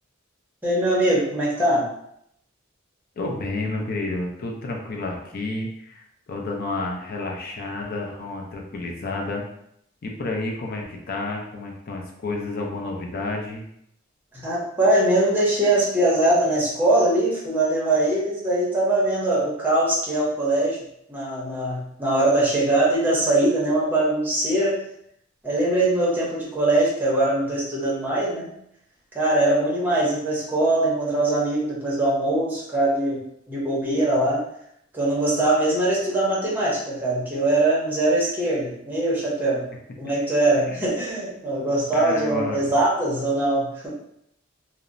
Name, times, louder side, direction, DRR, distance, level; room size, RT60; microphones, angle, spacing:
voice 1, 0.6-1.9 14.3-20.8 21.1-24.8 25.4-28.5 29.1-33.2 33.5-34.4 34.9-39.6 40.0-43.9, right 1 dB, 10° right, -6 dB, 0.8 m, -22 dB
voice 2, 3.2-6.0 6.3-9.4 10.0-13.6 40.7-40.8 41.9-42.7, left 2 dB, 50° left, 1 dB, 0.5 m, -30 dB
2.8 x 2.0 x 2.5 m, 0.74 s
head